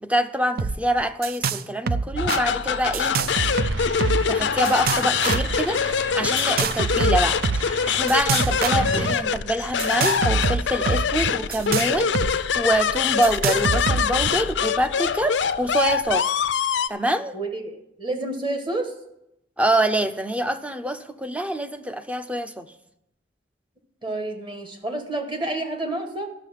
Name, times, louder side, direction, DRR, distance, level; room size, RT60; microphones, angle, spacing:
voice 1, 0.0-3.2 4.3-16.3 16.9-17.3 19.6-22.7, right 1 dB, 5° right, 10 dB, 0.5 m, -25 dB
sound 1, 0.6-0.7 1.0-1.6 1.9-2.4 2.9-4.3 4.6-5.6 6.4-7.6 8.1-9.1 9.8-12.3 12.6-12.7 13.2-14.3, right 4 dB, 55° right, 0.4 m, -25 dB
sound 2, 2.2-16.9, left 7 dB, 80° left, 0.5 m, -24 dB
sound 3, 3.3-9.1, right 3 dB, 80° right, 0.9 m, -36 dB
voice 2, 17.3-18.9 24.0-26.3, right 2 dB, 25° right, 4 dB, 1.5 m, -29 dB
12.0 x 6.4 x 7.4 m, 0.83 s
head